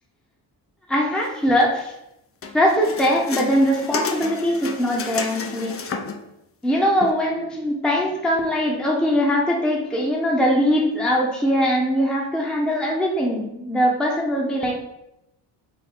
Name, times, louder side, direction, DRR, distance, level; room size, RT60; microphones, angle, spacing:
voice 1, 0.9-1.9 2.5-5.7 6.6-14.7, equal, ahead, -2 dB, 0.8 m, -21 dB
sound 1, 2.4-6.3 7.0-7.1, left 4 dB, 30° left, 0.5 m, -31 dB
3.9 x 2.6 x 3.9 m, 0.86 s
supercardioid pair, 60°, 47 cm